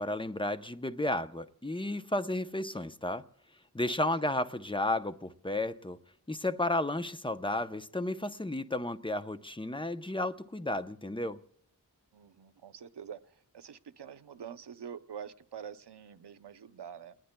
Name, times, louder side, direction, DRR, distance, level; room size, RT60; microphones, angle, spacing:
voice 1, 0.0-3.2 3.7-6.0 6.3-11.4, left 1 dB, 10° left, 0.7 m, -33 dB
voice 2, 12.1-13.2 13.5-17.2, right 7 dB, 85° right, 0.7 m, -46 dB
29.5 x 20.0 x 2.2 m
wide cardioid pair, 55°, 40 cm